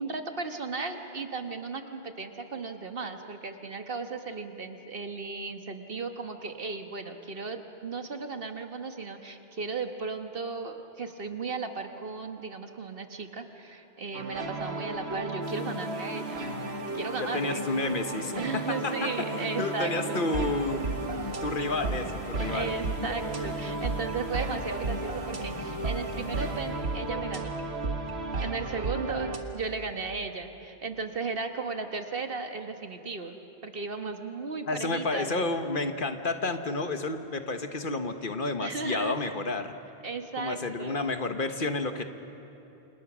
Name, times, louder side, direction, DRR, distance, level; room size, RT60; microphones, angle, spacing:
voice 1, 0.0-16.4 16.9-17.6 18.4-20.3 22.5-27.7 28.4-35.3 38.6-39.1 40.0-41.0, right 4 dB, 65° right, 6 dB, 1.7 m, -35 dB
sound 1, 14.1-29.4, right 3 dB, 90° right, 1.8 m, -34 dB
sound 2, 15.4-27.0, left 5 dB, 35° left, 1.2 m, -44 dB
voice 2, 17.2-20.8 21.4-22.7 34.7-39.8 40.4-42.0, left 3 dB, 55° left, 8 dB, 1.4 m, -31 dB
29.5 x 27.0 x 6.2 m, 2.9 s
omnidirectional pair, 1.0 m